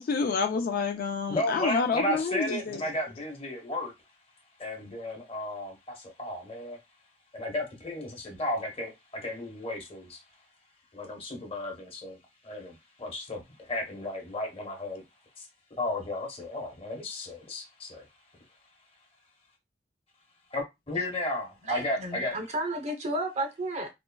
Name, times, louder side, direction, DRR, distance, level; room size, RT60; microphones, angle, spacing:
voice 1, 0.0-2.8, left 5 dB, 55° left, 0.3 m, -28 dB
voice 2, 1.3-3.9 4.6-6.8 7.3-10.2 10.9-12.2 12.4-15.0 15.4-15.5 15.8-18.1 20.5-22.3, left 1 dB, 35° left, 1.0 m, -34 dB
voice 3, 21.6-23.9, right 1 dB, 40° right, 0.6 m, -32 dB
3.5 x 2.1 x 2.2 m
head